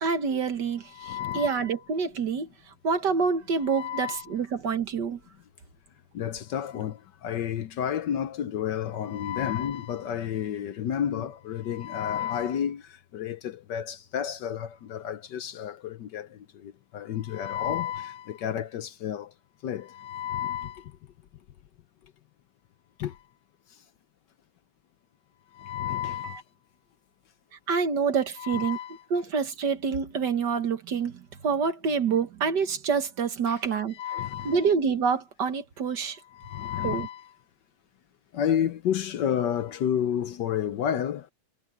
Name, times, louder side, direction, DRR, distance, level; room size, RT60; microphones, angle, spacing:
voice 1, 0.0-2.5 2.8-5.2 26.2-26.4 27.7-28.8 29.1-33.9 34.5-36.2 36.8-37.1, right 5 dB, 60° right, 2.0 m, -27 dB
voice 2, 0.9-1.6 3.6-4.3 6.1-19.3 19.6-20.9 23.0-23.2 25.5-26.4 28.4-29.0 33.5-33.6 33.9-34.7 36.3-37.3 38.3-41.3, left 9 dB, 65° left, 1.3 m, -31 dB
omnidirectional pair, 2.2 m